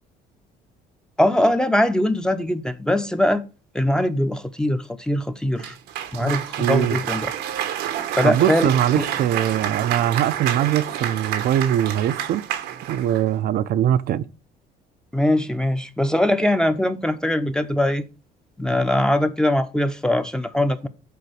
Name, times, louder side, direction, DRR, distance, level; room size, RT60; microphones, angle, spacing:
voice 1, 1.2-3.4 3.7-5.7 6.1-7.3 8.2-9.1 15.1-18.1 18.6-20.9, left 1 dB, 5° left, 0.7 m, -21 dB
Cheering / Applause, 5.6-13.3, right 10 dB, 85° right, 1.0 m, -29 dB
voice 2, 6.6-7.0 8.2-12.4 12.9-14.3, right 11 dB, 65° right, 0.5 m, -22 dB
6.9 x 4.2 x 6.2 m
cardioid pair, 110°, 17 cm